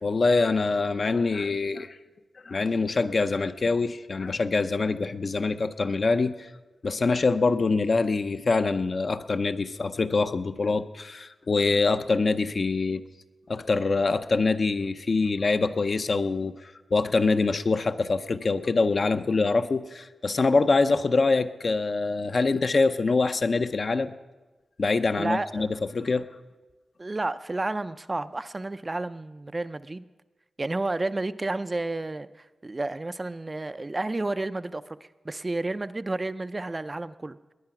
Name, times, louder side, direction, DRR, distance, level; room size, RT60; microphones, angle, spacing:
voice 1, 0.0-2.0 2.4-6.5 6.8-13.0 13.5-16.6 16.9-24.1 24.8-25.7 25.9-26.3, left 3 dB, 45° left, 10 dB, 0.6 m, -24 dB
voice 2, 25.2-25.7 27.0-30.0 30.6-37.4, right 2 dB, 25° right, 13 dB, 0.4 m, -31 dB
20.0 x 9.7 x 5.8 m, 1.2 s
wide cardioid pair, 125°, 0 cm